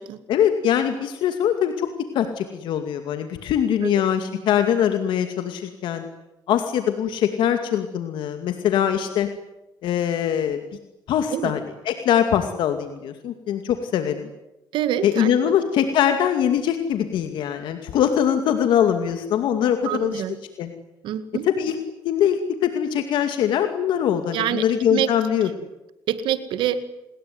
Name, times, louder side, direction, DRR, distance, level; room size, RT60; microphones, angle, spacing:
voice 1, 0.3-1.9 2.1-6.1 6.5-9.3 9.8-10.6 11.1-11.6 11.9-14.3 15.0-20.2 20.6-20.7 21.5-21.8 22.0-25.5, left 9 dB, 75° left, 7 dB, 2.5 m, -22 dB
voice 2, 14.7-15.5 19.8-20.4 21.0-21.5 24.3-25.1 26.1-26.8, right 11 dB, 80° right, 12 dB, 2.0 m, -26 dB
28.0 x 21.0 x 9.6 m, 0.96 s
cardioid pair, 100°, 8 cm